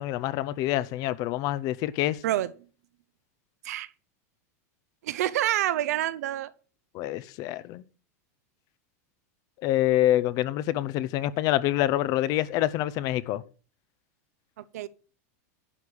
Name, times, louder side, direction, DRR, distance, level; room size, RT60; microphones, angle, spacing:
voice 1, 0.0-2.2 6.9-7.8 9.6-13.4, left 14 dB, 45° left, 0.7 m, -26 dB
voice 2, 5.0-6.5 14.6-14.9, right 13 dB, 80° right, 0.8 m, -27 dB
11.0 x 4.8 x 7.0 m
supercardioid pair, 135°, 8 cm